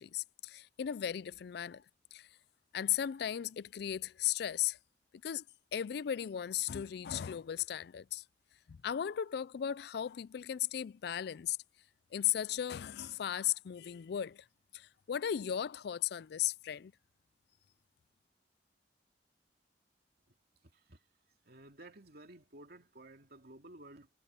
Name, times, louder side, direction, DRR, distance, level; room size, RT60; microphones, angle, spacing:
voice 1, 0.0-1.8 2.1-2.3 2.7-4.8 5.2-5.4 5.7-8.2 8.7-11.6 12.1-14.4 14.7-16.9, left 10 dB, 65° left, 0.4 m, -36 dB
voice 2, 20.6-21.0 21.4-24.1, right 1 dB, 60° right, 2.6 m, -54 dB
head